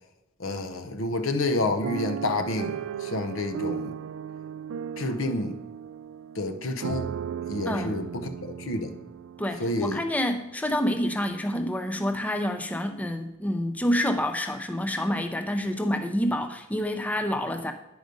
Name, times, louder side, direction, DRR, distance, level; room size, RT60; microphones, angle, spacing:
voice 1, 0.4-3.9 5.0-5.6 6.3-7.1 7.5-8.9 9.6-10.0, left 2 dB, 70° left, 8 dB, 0.8 m, -29 dB
sound 1, 1.8-9.9 10.5-10.6 10.9-11.2, right 8 dB, 70° right, 0.3 m, -36 dB
voice 2, 9.4-17.7, equal, 5° left, 6 dB, 0.5 m, -28 dB
9.1 x 5.0 x 5.2 m, 0.96 s
head